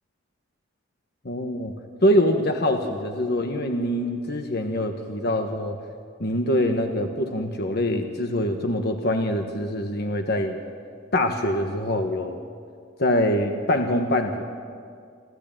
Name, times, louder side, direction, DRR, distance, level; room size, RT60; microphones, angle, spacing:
voice 1, 1.2-1.7 2.0-5.8 6.2-10.6 11.1-12.4 13.0-14.4, left 1 dB, 55° left, 4 dB, 1.4 m, -24 dB
26.5 x 15.0 x 9.0 m, 2.2 s
head